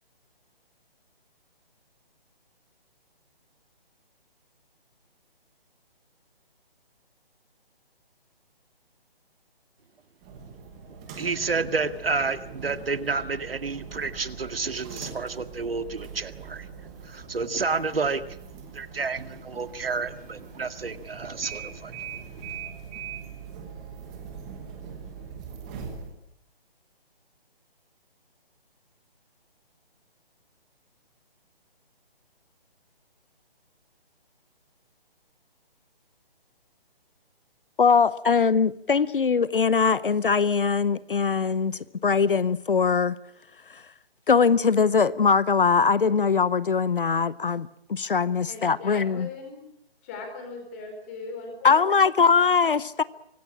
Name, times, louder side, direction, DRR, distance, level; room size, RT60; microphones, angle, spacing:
sound 1, 10.2-26.1, right 6 dB, 5° right, 1.2 m, -42 dB
voice 1, 11.2-16.7 17.0-18.4 18.7-22.0, right 4 dB, 70° right, 2.0 m, -30 dB
voice 2, 37.8-43.2 43.7-43.8 44.3-49.3 51.6-53.0, left 5 dB, 60° left, 0.8 m, -22 dB
voice 3, 48.5-49.6 50.0-51.7, left 4 dB, 15° left, 4.4 m, -39 dB
25.0 x 19.0 x 8.8 m
hypercardioid pair, 180°, 30 cm